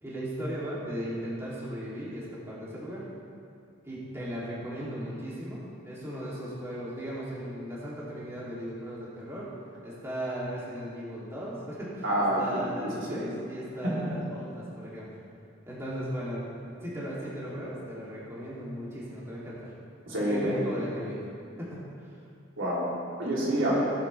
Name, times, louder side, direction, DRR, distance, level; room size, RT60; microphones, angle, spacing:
voice 1, 0.0-3.0 3.8-9.5 9.8-15.1 15.7-19.7 20.2-21.2 21.6-21.9, equal, 15° right, -8 dB, 2.8 m, -37 dB
voice 2, 12.0-13.2 13.8-14.1 20.1-20.7 22.6-23.9, right 1 dB, 90° right, -6 dB, 3.2 m, -28 dB
17.0 x 8.8 x 3.4 m, 2.5 s
head